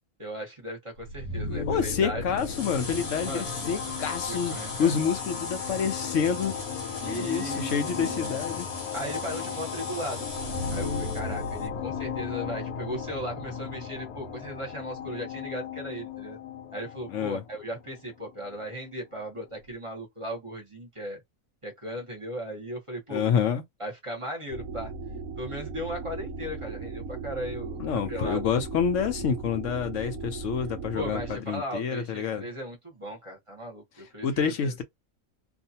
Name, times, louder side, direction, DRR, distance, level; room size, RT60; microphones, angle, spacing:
voice 1, 0.2-2.2 3.2-4.0 4.3-5.0 7.0-8.4 8.9-16.4 16.7-21.2 21.6-23.3 23.8-24.9 25.4-27.8 28.1-28.5 30.9-34.8, equal, 25° right, 0.9 m, -37 dB
sound 1, 1.0-18.6, left 5 dB, 90° left, 1.2 m, -35 dB
voice 2, 1.7-6.6 7.1-8.7 17.1-17.4 23.1-23.6 27.8-32.5 34.2-34.8, left 7 dB, 65° left, 0.9 m, -28 dB
sound 2, 2.4-11.7, left 2 dB, 30° left, 0.8 m, -40 dB
sound 3, 24.5-31.4, right 4 dB, 75° right, 1.0 m, -37 dB
2.5 x 2.4 x 2.7 m
omnidirectional pair, 1.5 m